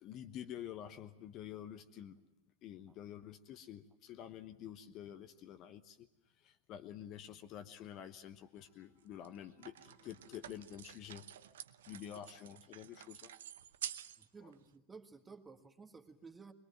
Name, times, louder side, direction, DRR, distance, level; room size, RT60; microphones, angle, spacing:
voice 1, 0.0-2.2 2.6-6.1 6.4-11.6 11.9-13.3 14.4-14.5, left 10 dB, 35° left, 9 dB, 1.1 m, -49 dB
sound 1, 8.6-8.7 9.2-14.3 14.5-14.6, right 10 dB, 60° right, 0.8 m, -49 dB
voice 2, 11.9-12.2 14.2-16.5, right 4 dB, 15° right, 7 dB, 1.8 m, -55 dB
24.0 x 22.0 x 7.5 m, 0.92 s
figure-of-eight pair, 90°, 0 cm